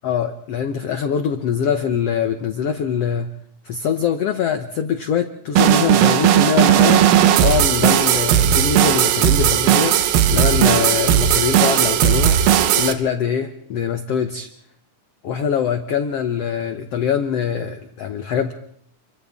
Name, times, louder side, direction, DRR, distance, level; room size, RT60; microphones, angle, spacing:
voice 1, 0.0-3.3 3.6-10.0 10.3-12.4 12.8-14.5 15.2-18.5, left 7 dB, 75° left, 8 dB, 1.4 m, -23 dB
sound 1, 5.6-12.9, right 10 dB, 80° right, 2.9 m, -16 dB
30.0 x 24.0 x 3.6 m, 0.67 s
omnidirectional pair, 4.2 m